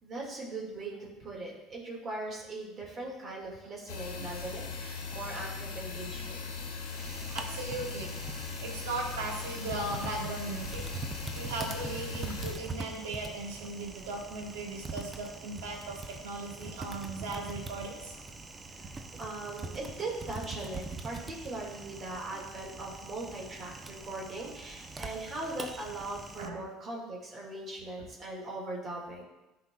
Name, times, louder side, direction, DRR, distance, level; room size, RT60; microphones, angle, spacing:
voice 1, 0.0-6.4 18.7-29.2, right 2 dB, 40° right, -3 dB, 2.1 m, -40 dB
sound 1, 3.9-12.5, left 4 dB, 80° left, 0.9 m, -39 dB
Typing, 6.9-26.5, right 3 dB, 25° right, 0.7 m, -43 dB
voice 2, 7.1-10.8 11.3-18.1 22.3-22.4 26.4-26.6, right 2 dB, 80° right, 0 dB, 1.4 m, -38 dB
11.0 x 4.2 x 2.4 m, 1.0 s
hypercardioid pair, 75°, 0 cm